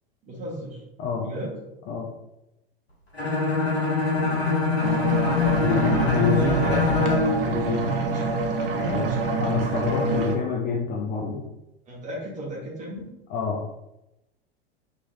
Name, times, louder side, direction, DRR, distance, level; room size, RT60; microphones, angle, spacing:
voice 1, 0.3-0.8 1.2-1.5 5.4-6.4 6.6-7.1 8.0-8.3 8.7-9.3 10.1-10.2 11.9-13.1, equal, 25° right, -4 dB, 1.3 m, -34 dB
Bowed string instrument, 3.2-7.4, left 3 dB, 85° left, 1.0 m, -23 dB
sound 1, 4.8-10.4, right 3 dB, 60° right, 0.6 m, -26 dB
voice 2, 5.6-6.8 7.4-8.0 8.9-9.1 9.4-11.4 13.3-13.6, left 5 dB, 25° left, -1 dB, 0.4 m, -27 dB
3.0 x 2.9 x 2.6 m, 0.91 s
figure-of-eight pair, 85°, 31 cm